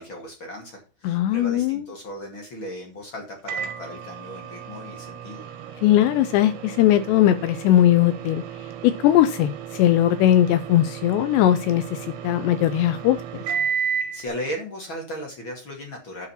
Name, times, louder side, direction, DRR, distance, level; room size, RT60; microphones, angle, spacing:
voice 1, 0.0-5.4 14.1-16.3, equal, 45° left, 1 dB, 1.7 m, -36 dB
voice 2, 1.0-1.8 5.8-8.4 8.8-12.0 12.2-13.2, left 12 dB, 85° left, 11 dB, 2.5 m, -19 dB
Microwave oven, 3.5-14.2, right 7 dB, 75° right, 3.7 m, -33 dB
10.5 x 5.0 x 5.6 m, 0.35 s
omnidirectional pair, 5.6 m